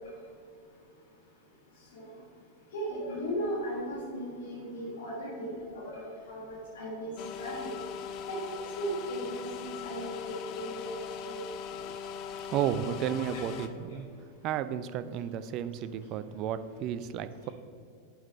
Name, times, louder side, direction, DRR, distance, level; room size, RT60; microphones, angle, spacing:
voice 1, 2.7-7.1 7.4-7.7 8.3-11.4 13.3-13.4, equal, 60° left, -5 dB, 1.7 m, -37 dB
sound 1, 7.2-13.7, left 7 dB, 40° left, 0.6 m, -40 dB
voice 2, 12.5-14.1 14.4-17.5, right 9 dB, 40° right, 13 dB, 0.4 m, -33 dB
11.0 x 5.2 x 4.2 m, 2.4 s
figure-of-eight pair, 90°, 0 cm